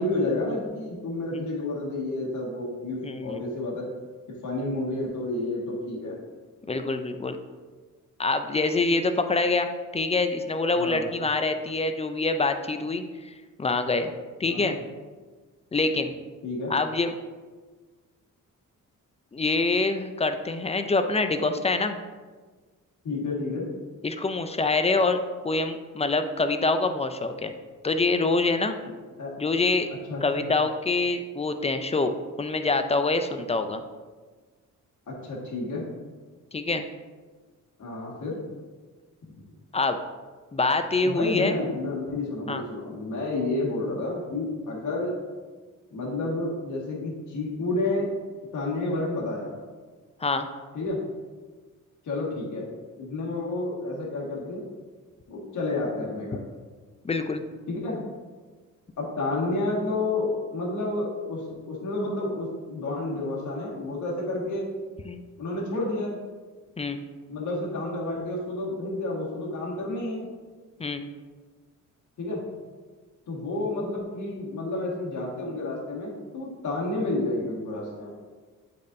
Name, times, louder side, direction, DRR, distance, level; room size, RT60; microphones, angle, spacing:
voice 1, 0.0-3.9 4.3-6.1 10.7-11.1 14.4-14.7 16.4-16.7 23.0-23.7 29.2-29.3 30.1-30.5 35.1-35.8 37.8-38.4 41.0-45.2 45.9-48.1 48.5-49.5 50.7-51.0 52.0-52.6 53.0-54.6 55.3-56.4 57.7-58.0 59.0-64.7 65.4-66.2 67.3-70.2 72.2-72.4 73.3-78.1, left 2 dB, 65° left, -3 dB, 1.7 m, -30 dB
voice 2, 3.0-3.4 6.7-7.4 8.2-13.3 13.6-14.1 14.4-14.8 15.7-16.1 16.7-17.1 19.3-22.0 24.0-25.2 25.4-27.5 27.8-28.7 29.4-29.9 30.2-33.8 36.5-36.8 39.7-40.0 40.5-41.6 42.5-42.6 50.2-50.5 57.0-57.4 65.0-65.2 66.8-67.0 70.8-71.0, left 3 dB, 20° left, 8 dB, 0.4 m, -25 dB
8.3 x 4.3 x 2.6 m, 1.4 s
cardioid pair, 100°, 33 cm